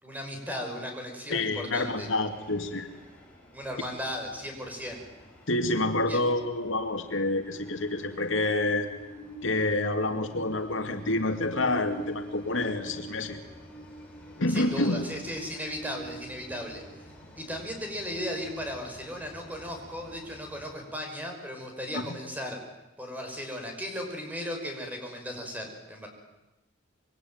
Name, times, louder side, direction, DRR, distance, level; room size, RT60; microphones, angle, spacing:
voice 1, 0.0-2.1 3.5-5.0 6.1-6.2 14.5-16.8 17.4-22.6 23.0-26.1, equal, 10° right, 3 dB, 6.0 m, -36 dB
voice 2, 1.3-2.9 5.5-8.9 9.4-13.4 14.4-15.0 21.9-22.0, left 2 dB, 70° left, 6 dB, 2.3 m, -28 dB
Train, 1.4-20.9, equal, 5° left, 6.0 m, -47 dB
26.5 x 23.0 x 9.4 m, 0.99 s
head